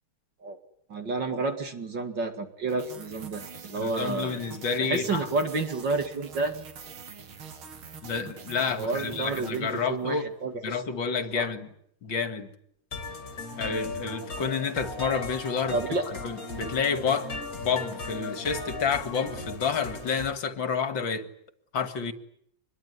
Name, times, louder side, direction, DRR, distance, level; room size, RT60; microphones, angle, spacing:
voice 1, 0.9-4.4 4.8-6.6 8.8-10.8 11.3-11.5 15.7-16.1, right 3 dB, 55° right, 2.8 m, -30 dB
sound 1, 2.7-10.2, right 6 dB, 75° right, 2.8 m, -45 dB
voice 2, 3.7-5.3 8.0-10.3 10.6-11.7 12.0-12.5 13.6-16.0 16.2-21.3 21.7-22.1, left 5 dB, 65° left, 2.6 m, -29 dB
sound 2, 12.9-20.3, left 3 dB, 40° left, 3.4 m, -37 dB
25.5 x 22.0 x 9.8 m
omnidirectional pair, 2.3 m